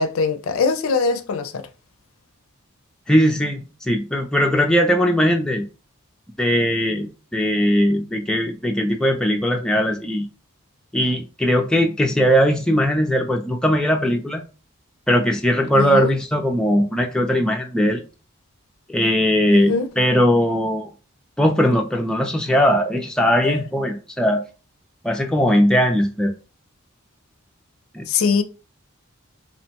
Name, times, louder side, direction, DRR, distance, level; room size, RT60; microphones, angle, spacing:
voice 1, 0.0-1.7 15.8-16.1 19.5-19.9 23.4-23.6 28.1-28.4, left 4 dB, 70° left, 0.4 m, -22 dB
voice 2, 3.1-5.6 6.4-10.2 10.9-14.4 15.1-18.0 18.9-20.9 21.4-24.4 25.0-26.3 27.9-28.1, equal, 5° left, 0.3 m, -19 dB
2.8 x 2.1 x 2.8 m
head